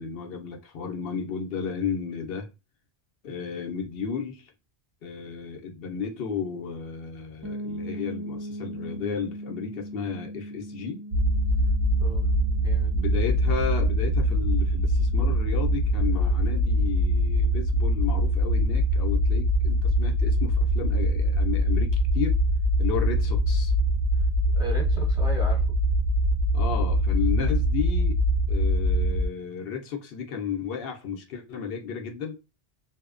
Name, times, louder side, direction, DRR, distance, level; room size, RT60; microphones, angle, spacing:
voice 1, 0.0-2.5 3.2-4.5 5.0-11.0 12.9-22.4 22.8-23.7 26.5-28.2 28.5-32.4, left 6 dB, 65° left, 0.7 m, -33 dB
sound 1, 7.4-17.1, equal, 25° right, 0.5 m, -40 dB
sound 2, 11.1-29.3, equal, 65° right, 0.7 m, -23 dB
voice 2, 12.0-13.0 24.5-25.7, right 1 dB, 5° right, 0.8 m, -37 dB
2.6 x 2.1 x 2.4 m
omnidirectional pair, 1.1 m